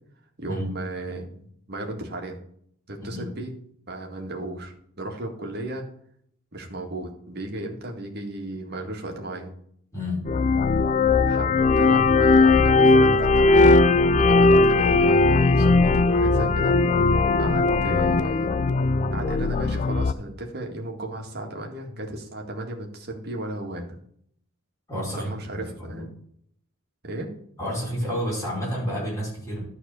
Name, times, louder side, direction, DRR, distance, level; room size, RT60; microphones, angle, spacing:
voice 1, 0.4-2.4 2.9-3.6 3.9-5.9 6.5-9.5 11.3-11.5 11.8-13.8 14.1-16.8 17.4-18.5 19.1-23.9 25.2-26.1 27.0-27.3, right 1 dB, 50° right, 1 dB, 2.0 m, -34 dB
voice 2, 9.9-10.3 24.9-26.1 27.6-29.6, equal, 15° left, -6 dB, 4.9 m, -30 dB
sound 1, 10.3-20.1, left 3 dB, 35° left, 0.4 m, -19 dB
12.0 x 4.2 x 6.8 m, 0.66 s
head